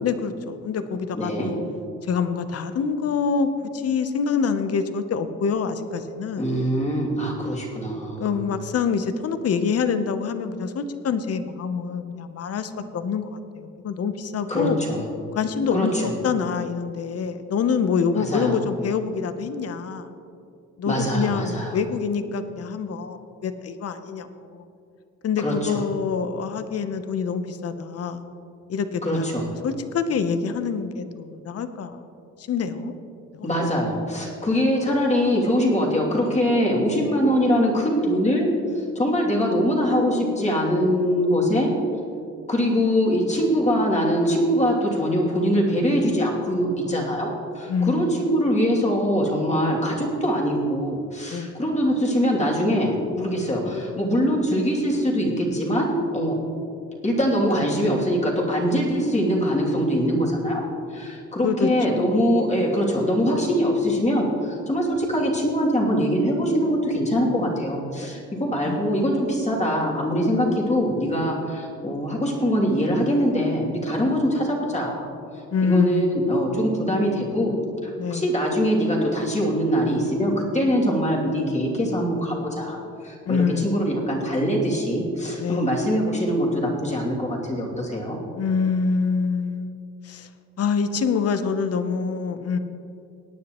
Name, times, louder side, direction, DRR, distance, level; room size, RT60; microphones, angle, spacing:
voice 1, 0.0-1.6 2.0-6.4 8.2-14.8 15.3-20.1 20.8-24.6 25.2-28.2 28.7-29.3 29.6-32.0 32.4-32.9 33.3-33.5 47.7-48.1 51.3-51.5 61.4-62.0 68.6-69.0 75.5-76.3 78.0-78.2 83.3-83.9 85.4-85.8 88.4-89.7 90.0-90.3 90.6-92.6, left 5 dB, 50° left, 10 dB, 0.9 m, -26 dB
voice 2, 1.1-1.5 6.4-8.3 14.5-15.0 15.7-16.1 18.2-18.5 20.9-21.7 25.4-25.8 29.0-29.5 33.4-38.5 38.7-41.7 42.5-56.3 57.0-60.6 60.9-75.1 75.6-77.5 77.8-82.8 83.0-88.2, equal, 25° left, -3 dB, 2.8 m, -23 dB
18.0 x 9.5 x 3.1 m, 2.5 s
cardioid pair, 90°, 30 cm